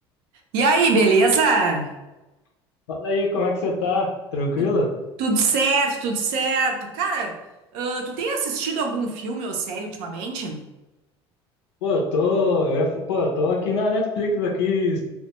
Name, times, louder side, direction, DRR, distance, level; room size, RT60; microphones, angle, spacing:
voice 1, 0.5-1.9 4.6-4.7 5.2-7.4 7.7-10.6, right 3 dB, 70° right, 3 dB, 0.5 m, -22 dB
voice 2, 2.9-4.9 11.8-15.0, left 3 dB, 85° left, 0 dB, 0.5 m, -23 dB
2.2 x 2.2 x 2.8 m, 1.0 s
hypercardioid pair, 75°, 14 cm